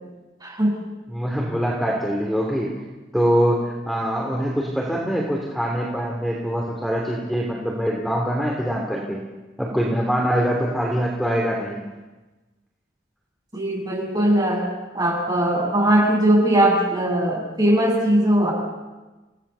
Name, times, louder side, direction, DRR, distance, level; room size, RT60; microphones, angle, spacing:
voice 1, 0.4-0.8 13.5-14.7 14.9-18.5, right 1 dB, 20° right, -2 dB, 8.0 m, -19 dB
voice 2, 1.1-2.7 3.1-9.2 9.6-11.8, equal, ahead, -2 dB, 3.0 m, -23 dB
29.5 x 17.5 x 6.9 m, 1.2 s
head